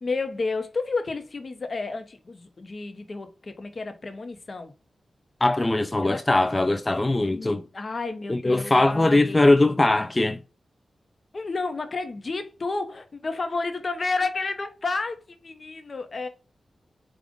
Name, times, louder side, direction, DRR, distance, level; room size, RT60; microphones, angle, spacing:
voice 1, 0.0-4.7 6.0-6.2 7.3-9.4 9.8-9.9 11.3-16.3, left 3 dB, 55° left, 0.9 m, -31 dB
voice 2, 5.4-7.6 8.3-10.4, left 2 dB, 30° left, 0.4 m, -21 dB
5.0 x 2.5 x 3.7 m
cardioid pair, 45°, 0 cm